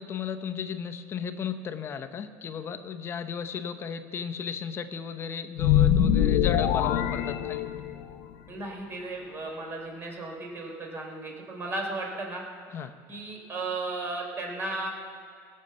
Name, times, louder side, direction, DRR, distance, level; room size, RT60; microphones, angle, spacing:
voice 1, 0.0-7.7 12.7-12.9, left 7 dB, 30° left, 9 dB, 0.9 m, -35 dB
sound 1, 5.6-8.2, left 10 dB, 80° left, 0.7 m, -23 dB
voice 2, 8.5-12.4 13.1-14.9, right 2 dB, 30° right, 0 dB, 3.8 m, -35 dB
18.5 x 6.5 x 7.8 m, 2.3 s
cardioid pair, 135°, 8 cm